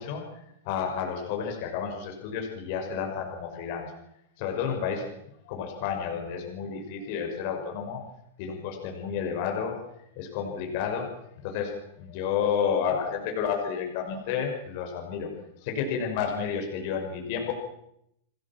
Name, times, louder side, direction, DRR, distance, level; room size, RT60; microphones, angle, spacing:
voice 1, 0.0-3.9 4.4-5.0 5.4-8.0 8.4-9.8 10.2-11.1 11.4-11.7 12.0-15.3 15.6-17.5, left 7 dB, 45° left, 2 dB, 6.0 m, -31 dB
28.0 x 19.5 x 7.5 m, 0.77 s
supercardioid pair, 160°, 0 cm